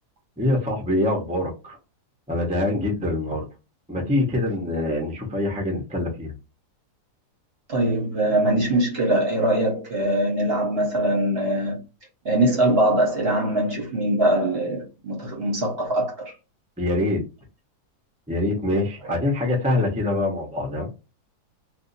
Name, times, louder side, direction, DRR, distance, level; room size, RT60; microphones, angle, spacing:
voice 1, 0.4-1.8 2.3-3.4 3.9-6.3 16.8-17.2 18.3-20.9, left 1 dB, 10° right, 0.4 m, -24 dB
voice 2, 7.7-11.8 12.2-16.3 19.1-19.2, right 1 dB, 45° right, 0.9 m, -22 dB
2.6 x 2.4 x 3.9 m
omnidirectional pair, 1.7 m